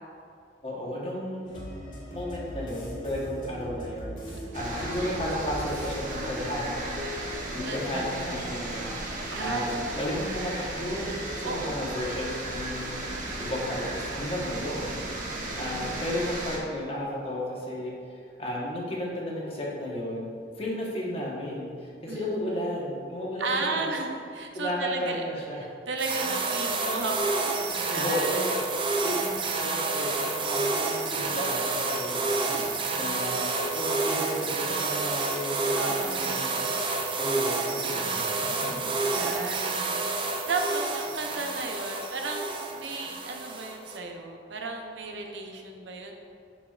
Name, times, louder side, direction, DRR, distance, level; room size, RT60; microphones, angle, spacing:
voice 1, 0.6-6.9 7.5-20.3 20.6-23.8 24.5-25.7 28.0-29.3 29.5-36.7 37.2-38.2 38.7-38.8, left 1 dB, 35° left, -4 dB, 1.1 m, -33 dB
sound 1, 1.4-7.5 7.9-8.0, equal, 50° left, 1.5 m, -40 dB
voice 2, 4.3-4.7 7.6-8.3 9.3-9.8 11.4-12.0 15.4-15.9 22.1-22.3 23.4-25.2 25.6-28.5 32.5-32.9 33.4-33.5 35.8-36.5 38.5-46.1, right 3 dB, 90° right, 2 dB, 0.7 m, -35 dB
sound 2, 4.5-16.6, right 1 dB, 45° right, 0.9 m, -35 dB
sound 3, 26.0-44.0, right 3 dB, 30° right, 0.4 m, -29 dB
7.2 x 5.9 x 2.4 m, 2.4 s
head